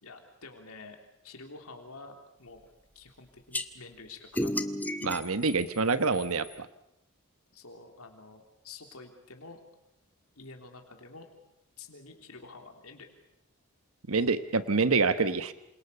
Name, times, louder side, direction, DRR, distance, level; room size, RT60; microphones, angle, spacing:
voice 1, 0.0-1.0 1.2-2.7 2.9-4.6 7.5-9.6 10.4-11.3 11.8-13.1, left 3 dB, 80° left, 4 dB, 3.4 m, -48 dB
sound 1, 3.5-3.6 4.3-6.5, left 1 dB, 10° left, 1.3 m, -33 dB
voice 2, 5.0-6.7 14.1-15.5, right 4 dB, 75° right, 11 dB, 1.2 m, -26 dB
27.5 x 27.5 x 6.8 m, 0.85 s
head